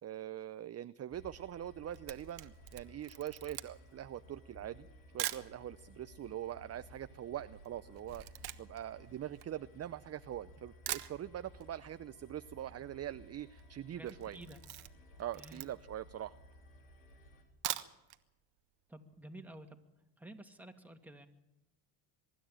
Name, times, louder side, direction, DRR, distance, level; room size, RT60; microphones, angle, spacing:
voice 1, 0.0-4.9 5.1-14.4 15.2-16.4, right 11 dB, 30° right, 13 dB, 0.7 m, -43 dB
sound 1, 1.1-17.4, equal, 80° left, 3.9 m, -58 dB
Camera, 1.9-5.5 6.2-6.3 6.5-10.2 10.6-10.7 10.9-11.7 12.0-12.1 12.4-12.5 12.6-13.1 13.4-13.6 14.0-16.0 16.5-16.6 17.4-18.2 18.6-18.7 19.0-19.1, right 13 dB, 55° right, 1.4 m, -43 dB
voice 2, 14.0-14.6 15.3-15.6 18.9-19.8 20.2-21.3, right 1 dB, 5° right, 4 dB, 2.4 m, -51 dB
24.0 x 12.5 x 8.9 m, 0.95 s
hypercardioid pair, 75°, 47 cm